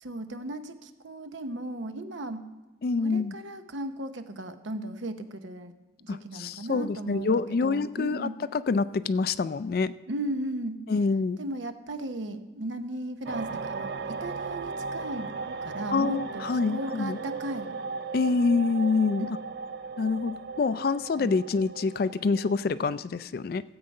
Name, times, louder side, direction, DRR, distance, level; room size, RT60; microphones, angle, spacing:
voice 1, 0.0-2.4 3.0-5.7 6.0-7.3 7.6-8.4 10.1-10.8 11.4-17.8 21.2-21.4, right 1 dB, 75° right, 8 dB, 0.9 m, -36 dB
voice 2, 2.8-3.4 6.1-9.9 10.9-11.4 15.9-17.2 18.1-19.3 20.0-23.6, left 4 dB, 50° left, 15 dB, 0.3 m, -26 dB
sound 1, 13.3-22.5, right 4 dB, 55° right, 0.4 m, -37 dB
16.0 x 7.9 x 5.4 m, 1.1 s
head